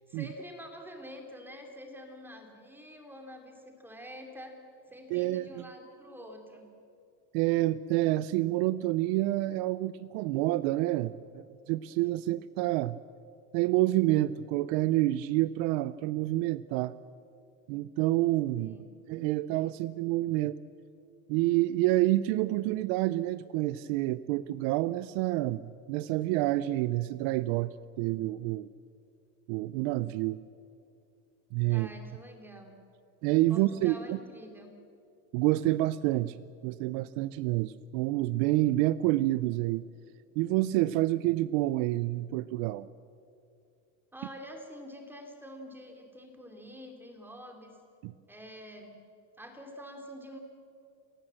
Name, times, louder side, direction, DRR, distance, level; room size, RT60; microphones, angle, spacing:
voice 1, 0.1-4.5 4.9-6.7 18.6-18.9 31.7-32.7 33.5-34.7 44.1-47.7 48.3-49.0 49.4-50.4, equal, 5° right, 3 dB, 2.7 m, -47 dB
voice 2, 5.1-5.7 7.3-13.0 13.5-16.9 17.7-18.7 19.1-20.6 21.3-28.7 29.5-30.4 31.5-31.9 33.2-34.2 35.3-36.4 36.6-39.8 40.4-42.9 48.0-48.1, right 16 dB, 65° right, 16 dB, 0.6 m, -28 dB
29.0 x 15.5 x 7.6 m, 2.5 s
cardioid pair, 145°, 43 cm